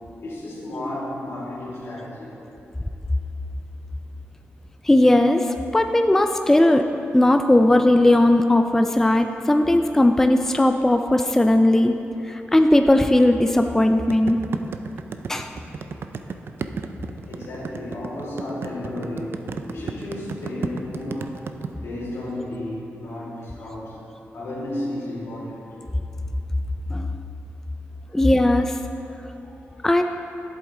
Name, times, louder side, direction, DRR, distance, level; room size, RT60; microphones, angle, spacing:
voice 1, 0.2-2.4 5.8-6.0 17.3-21.4 21.7-24.0 24.3-25.7 28.1-28.2 29.1-29.8, left 1 dB, 75° left, -5 dB, 2.4 m, -33 dB
voice 2, 4.8-6.8 7.1-11.9 12.2-14.4 15.3-15.5 26.9-27.2 28.1-28.8 29.8-30.0, left 1 dB, 10° left, 6 dB, 0.4 m, -18 dB
sound 1, 14.1-21.7, right 5 dB, 60° right, 0.4 m, -32 dB
11.0 x 7.9 x 3.7 m, 2.9 s
wide cardioid pair, 100°, 4 cm